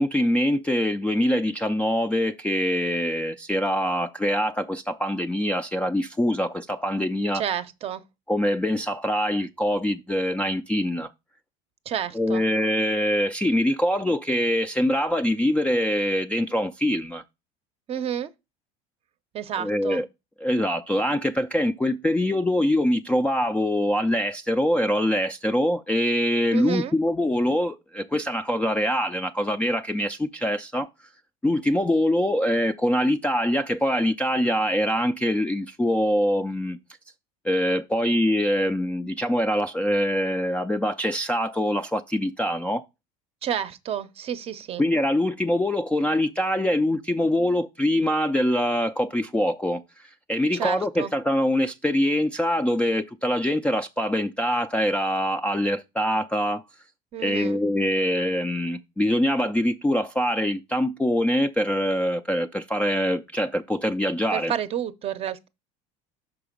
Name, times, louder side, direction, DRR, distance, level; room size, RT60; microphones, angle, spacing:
voice 1, 0.0-7.4 8.3-11.1 12.1-17.2 19.6-20.1 20.4-30.9 31.4-36.8 37.4-42.9 44.8-56.6 57.2-64.5, left 1 dB, 5° left, 0.3 m, -24 dB
voice 2, 7.3-8.0 11.9-12.4 17.9-18.3 19.3-20.0 26.5-26.9 43.4-44.8 50.5-51.1 57.1-57.6 64.3-65.5, right 9 dB, 35° right, 0.6 m, -30 dB
5.9 x 4.7 x 5.1 m
supercardioid pair, 130°, 17 cm